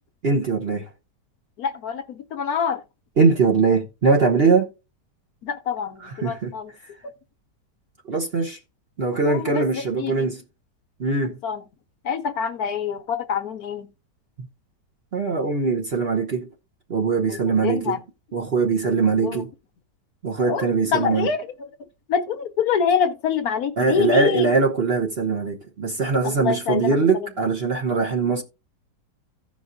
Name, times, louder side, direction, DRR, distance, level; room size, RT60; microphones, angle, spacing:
voice 1, 0.2-0.8 3.2-4.7 6.0-6.5 8.1-8.6 9.0-10.4 11.0-11.4 15.1-16.5 16.9-18.0 18.3-19.5 20.2-21.3 23.8-28.4, right 4 dB, 40° right, 1.1 m, -21 dB
voice 2, 1.6-2.8 5.4-6.7 7.0-7.1 9.2-10.3 11.2-11.6 12.0-13.9 17.3-18.0 18.8-18.9 19.2-19.4 20.5-21.7 22.1-24.5 26.2-27.3, left 7 dB, 65° left, 1.1 m, -26 dB
15.5 x 5.3 x 2.6 m
omnidirectional pair, 1.9 m